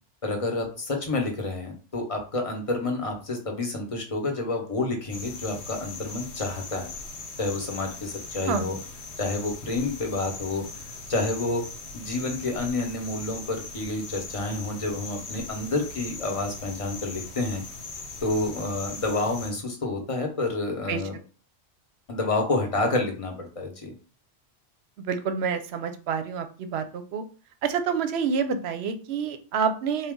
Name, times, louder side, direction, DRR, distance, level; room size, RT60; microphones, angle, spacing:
voice 1, 0.2-6.9 7.4-8.8 9.2-11.6 11.9-17.6 18.2-21.2 22.1-23.9, left 2 dB, 35° left, 2 dB, 0.8 m, -29 dB
sound 1, 5.1-19.5, left 3 dB, 70° left, 1.1 m, -40 dB
voice 2, 25.0-27.2 27.6-30.1, right 6 dB, 70° right, 9 dB, 0.8 m, -28 dB
3.9 x 2.3 x 3.6 m, 0.36 s
omnidirectional pair, 1.2 m